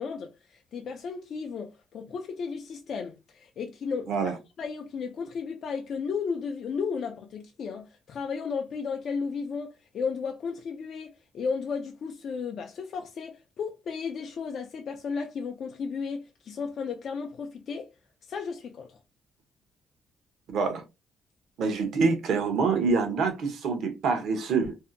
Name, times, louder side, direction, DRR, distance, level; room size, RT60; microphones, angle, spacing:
voice 1, 0.0-17.9 18.3-19.0, left 5 dB, 60° left, 0.4 m, -34 dB
voice 2, 20.5-20.8 21.6-24.8, right 4 dB, 75° right, 0.7 m, -26 dB
2.6 x 2.1 x 2.5 m
cardioid pair, 90°, 0 cm